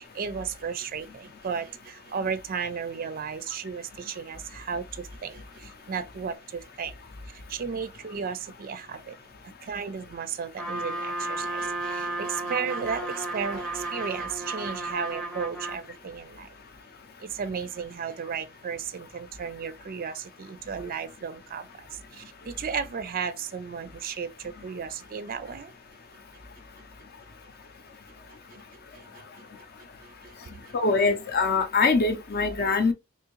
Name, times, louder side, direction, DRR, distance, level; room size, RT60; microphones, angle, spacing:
voice 1, 0.0-6.9 7.3-9.2 9.6-16.5 17.2-25.7 28.5-28.6 28.9-29.4 30.0-30.8, right 6 dB, 40° right, 0.4 m, -34 dB
Trumpet, 10.6-15.8, right 2 dB, 5° left, 0.6 m, -33 dB
voice 2, 30.7-32.9, left 4 dB, 45° left, 0.6 m, -23 dB
3.6 x 2.6 x 3.0 m
head